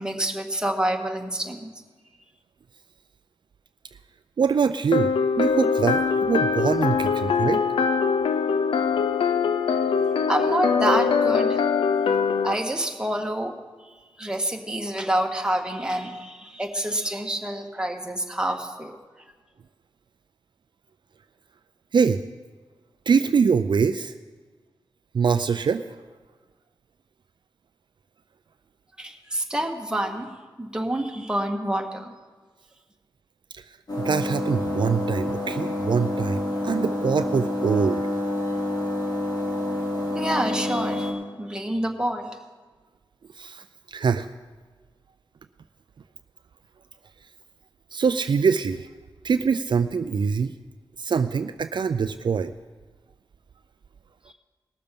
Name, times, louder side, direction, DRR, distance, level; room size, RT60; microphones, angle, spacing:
voice 1, 0.0-1.7 10.3-11.6 12.4-13.5 13.8-19.0 29.0-30.3 30.6-32.1 40.1-42.4, right 1 dB, 10° right, 2 dB, 1.6 m, -27 dB
voice 2, 4.4-7.6 11.9-12.0 12.4-12.5 21.9-22.2 23.1-24.1 25.1-25.8 33.5-33.6 34.0-38.0 43.4-44.3 47.9-48.9 49.2-50.5 51.0-52.5, right 6 dB, 60° right, 10 dB, 0.4 m, -24 dB
sound 1, 4.9-12.5, left 5 dB, 90° left, 0.4 m, -22 dB
sound 2, 33.9-41.1, left 1 dB, 50° left, 3.0 m, -28 dB
19.0 x 6.8 x 5.2 m, 1.4 s
cardioid pair, 55°, 9 cm